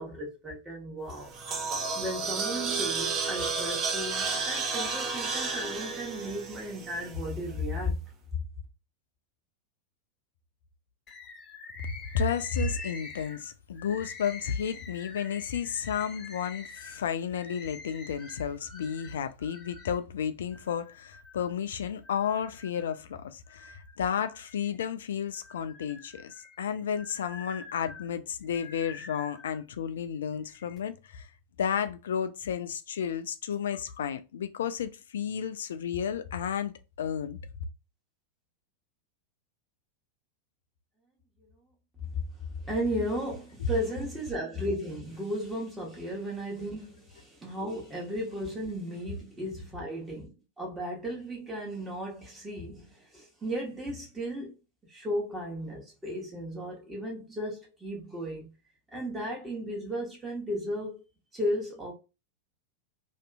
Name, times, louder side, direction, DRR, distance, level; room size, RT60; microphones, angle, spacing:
voice 1, 0.0-1.3 2.0-8.0 8.3-8.4 42.6-54.6 54.9-58.5 58.9-61.0 61.3-61.9, equal, 15° right, 1.0 m, -35 dB
sound 1, 1.1-7.4, right 4 dB, 30° right, 0.6 m, -32 dB
Bird, 11.1-20.0 20.5-21.5 22.0-23.0 23.5-24.9 25.3-29.6 30.3-30.8, left 4 dB, 25° left, 0.7 m, -47 dB
voice 2, 11.8-31.3 31.6-37.4, left 7 dB, 60° left, 0.3 m, -32 dB
2.7 x 2.4 x 2.3 m
figure-of-eight pair, 90°, 0 cm